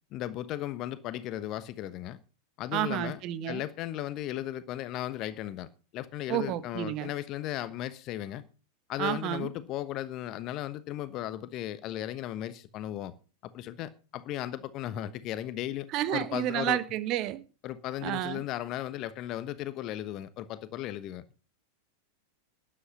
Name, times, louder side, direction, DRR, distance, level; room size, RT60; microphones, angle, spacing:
voice 1, 0.1-2.2 2.6-3.2 3.5-8.4 8.9-13.1 13.4-16.8 17.6-21.2, left 13 dB, 35° left, 1.2 m, -36 dB
voice 2, 2.7-3.6 6.3-7.1 9.0-9.5 15.9-17.4 18.0-18.4, right 13 dB, 40° right, 1.4 m, -30 dB
12.5 x 10.0 x 5.6 m
figure-of-eight pair, 90°, 0 cm